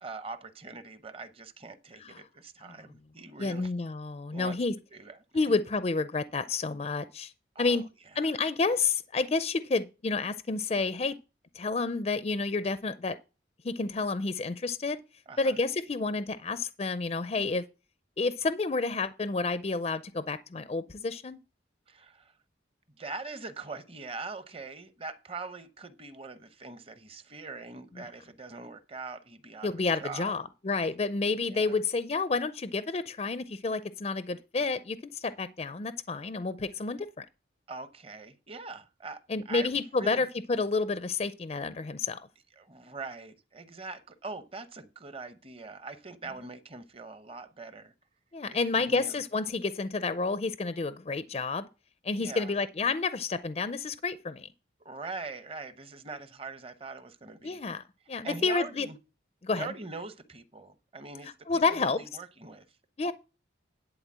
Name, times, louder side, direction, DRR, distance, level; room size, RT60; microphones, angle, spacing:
voice 1, 0.0-3.7 4.3-4.6 4.9-5.5 7.5-7.8 8.1-8.3 15.3-15.6 21.9-22.4 23.0-30.4 31.3-31.8 37.7-39.7 40.0-40.3 42.5-47.9 48.5-49.2 52.2-52.5 54.8-57.6 58.2-59.0 59.5-62.6 63.0-63.1, right 3 dB, 30° right, 0.8 m, -42 dB
voice 2, 3.4-4.7 5.3-7.3 7.6-7.8 8.2-11.1 11.5-13.2 13.6-15.0 15.4-17.6 18.2-21.4 28.0-28.1 29.6-37.2 39.3-42.2 48.3-51.7 52.0-54.5 57.4-58.9 59.4-59.7 61.2-62.0 63.0-63.1, left 3 dB, 35° left, 0.4 m, -30 dB
11.0 x 4.0 x 7.3 m
head